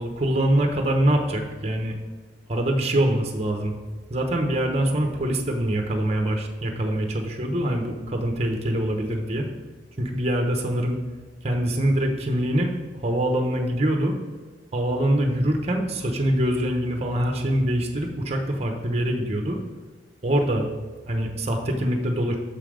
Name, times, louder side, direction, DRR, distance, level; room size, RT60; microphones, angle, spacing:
voice 1, 0.0-1.9 2.5-3.7 4.1-9.5 10.0-11.0 11.4-12.7 13.0-14.1 14.7-19.6 20.2-20.7 21.1-22.4, right 1 dB, 35° right, 3 dB, 0.9 m, -24 dB
6.8 x 5.7 x 5.0 m, 1.4 s
head